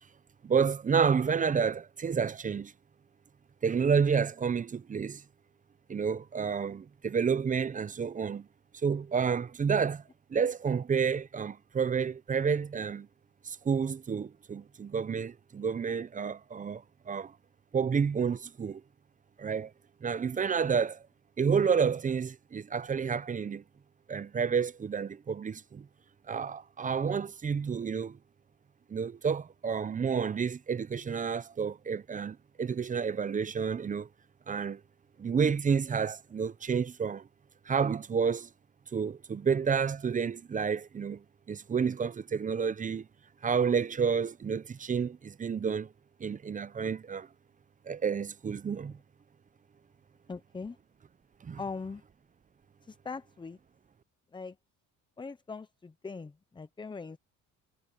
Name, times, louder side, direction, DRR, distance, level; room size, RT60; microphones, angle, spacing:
voice 1, 0.4-2.7 3.6-5.2 5.9-8.5 8.8-10.0 10.3-13.1 13.4-17.3 17.7-18.8 19.4-19.7 20.0-21.0 21.4-23.6 24.1-25.9 26.3-28.2 28.9-34.1 34.5-34.8 35.2-37.3 37.7-38.5 38.9-43.1 43.4-45.9 46.2-47.3 47.9-49.0 51.4-51.6, right 6 dB, 25° right, 0.6 m, -30 dB
voice 2, 50.3-50.8 51.6-52.0 52.9-53.6 54.3-54.5 55.2-57.2, left 4 dB, 15° left, 0.7 m, -41 dB
cardioid pair, 110°, 33 cm